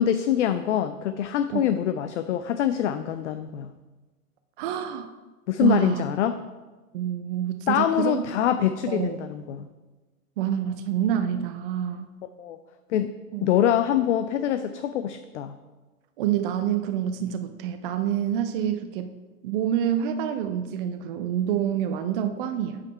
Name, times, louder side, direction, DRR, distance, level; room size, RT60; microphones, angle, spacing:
voice 1, 0.0-3.7 5.5-6.4 7.7-9.6 12.4-12.6 12.9-13.1 13.4-15.6, left 10 dB, 55° left, 10 dB, 0.5 m, -24 dB
voice 2, 4.6-5.1 5.6-6.0 6.9-8.2 8.9-9.2 10.4-12.1 13.3-13.5 16.2-19.1 19.4-22.8, right 10 dB, 40° right, 8 dB, 0.5 m, -27 dB
8.3 x 5.0 x 4.6 m, 1.2 s
figure-of-eight pair, 110°, 45 cm